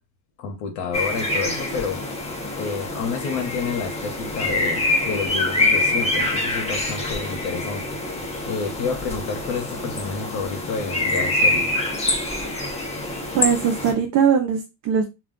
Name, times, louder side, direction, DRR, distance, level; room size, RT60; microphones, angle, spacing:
voice 1, 0.4-2.0 2.6-8.0 8.5-11.7, left 5 dB, 75° left, 0.9 m, -29 dB
sound 1, 0.9-13.9, left 2 dB, 15° left, 0.6 m, -25 dB
voice 2, 13.3-15.0, right 7 dB, 40° right, 0.4 m, -20 dB
2.4 x 2.2 x 3.5 m
cardioid pair, 130°, 46 cm